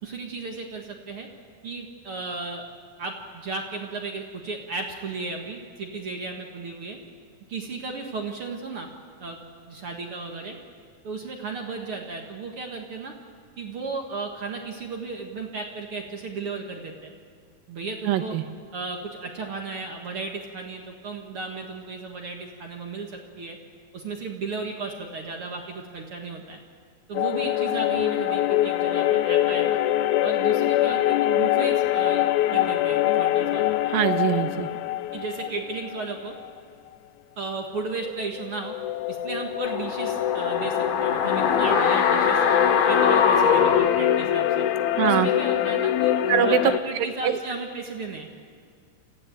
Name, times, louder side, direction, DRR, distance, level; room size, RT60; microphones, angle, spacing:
voice 1, 0.0-1.3 1.6-2.6 3.0-7.0 7.5-8.9 9.2-10.6 11.0-13.1 13.6-17.1 17.7-18.4 18.7-23.6 23.9-26.6 27.1-29.8 30.2-32.2 32.5-33.8 35.1-36.3 37.4-38.7 39.1-42.4 42.9-44.7 45.0-46.1 46.4-48.3, right 4 dB, 50° right, 2 dB, 1.9 m, -34 dB
voice 2, 18.1-18.4 33.9-34.7 45.0-45.3 46.3-46.6 46.9-47.4, right 11 dB, 80° right, 10 dB, 2.7 m, -23 dB
sound 1, 27.1-36.5 38.0-46.8, left 12 dB, 80° left, 1.8 m, -24 dB
sound 2, 39.6-44.8 45.1-45.2, left 6 dB, 60° left, 2.1 m, -23 dB
26.5 x 15.5 x 9.2 m, 2.1 s
omnidirectional pair, 4.1 m